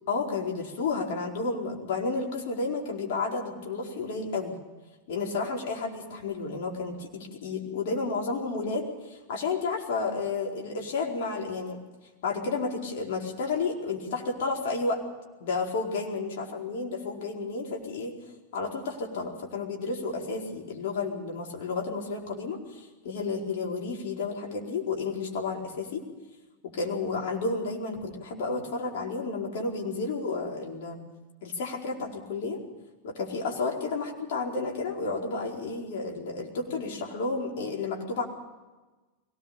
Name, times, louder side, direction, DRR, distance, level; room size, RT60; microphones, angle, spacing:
voice 1, 0.1-4.5 5.1-11.8 12.2-15.0 15.4-18.1 18.5-26.0 26.6-31.0 31.4-32.6 33.0-38.2, left 4 dB, 55° left, 0 dB, 4.6 m, -31 dB
23.0 x 18.5 x 7.0 m, 1.2 s
figure-of-eight pair, 90°, 0 cm